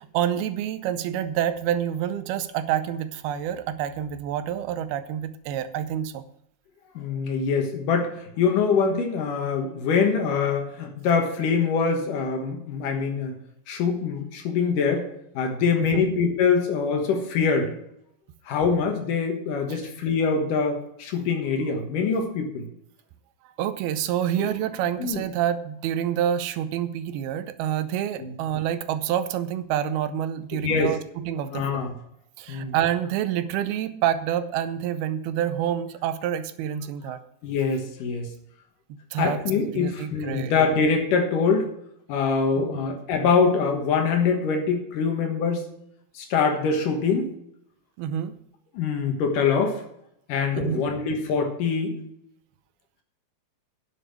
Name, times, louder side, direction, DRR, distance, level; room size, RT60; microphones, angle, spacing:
voice 1, 0.0-6.2 15.8-16.0 19.7-19.8 23.6-31.9 32.4-37.2 39.1-39.4 39.7-40.5 48.0-48.3 50.5-50.9, right 10 dB, 90° right, 12 dB, 2.6 m, -27 dB
voice 2, 7.0-13.3 13.7-15.1 15.3-17.7 18.5-22.6 24.4-24.5 25.0-25.2 28.2-28.3 30.5-30.9 31.5-31.9 32.5-32.7 37.4-38.3 39.2-41.7 42.1-45.6 46.2-47.3 48.7-49.8 50.3-52.0, left 5 dB, 65° left, 4 dB, 2.8 m, -24 dB
10.0 x 7.0 x 6.2 m, 0.74 s
omnidirectional pair, 4.4 m